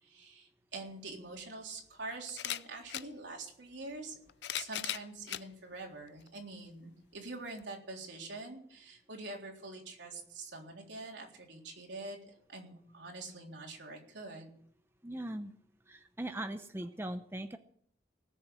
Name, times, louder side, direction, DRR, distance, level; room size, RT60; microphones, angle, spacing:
voice 1, 0.0-4.1 4.5-14.5, right 3 dB, 80° right, 0 dB, 3.7 m, -45 dB
sound 1, 0.9-1.0 2.3-3.1 4.1-5.5 6.2-6.3 7.6-7.7, left 12 dB, 70° left, 0.5 m, -38 dB
voice 2, 15.0-15.5 15.9-17.6, right 1 dB, 15° right, 8 dB, 0.7 m, -40 dB
19.0 x 6.9 x 8.3 m, 0.62 s
head